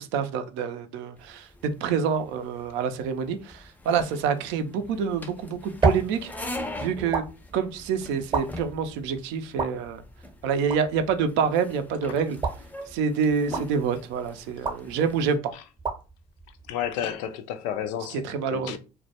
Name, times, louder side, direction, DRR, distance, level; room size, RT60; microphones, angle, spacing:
voice 1, 0.0-1.5 1.8-6.3 6.8-7.2 7.5-10.0 10.4-12.4 12.9-15.5 18.2-18.8, right 6 dB, 65° right, 0.4 m, -27 dB
sound 1, 1.2-15.4, left 1 dB, 10° left, 0.5 m, -42 dB
sound 2, 5.1-17.3, right 4 dB, 25° right, 0.7 m, -34 dB
voice 2, 16.7-18.8, left 9 dB, 70° left, 0.4 m, -32 dB
2.2 x 2.1 x 2.8 m
hypercardioid pair, 60°, 21 cm